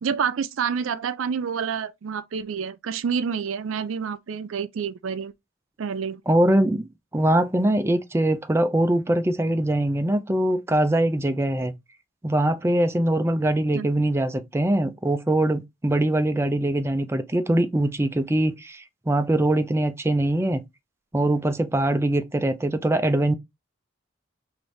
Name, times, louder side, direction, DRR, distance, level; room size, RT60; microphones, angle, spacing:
voice 1, 0.0-5.3 5.8-6.2 13.7-13.9, right 6 dB, 90° right, 0.4 m, -28 dB
voice 2, 6.3-11.7 12.2-20.6 21.1-23.3, right 1 dB, 15° right, 0.4 m, -22 dB
4.8 x 2.6 x 3.1 m
head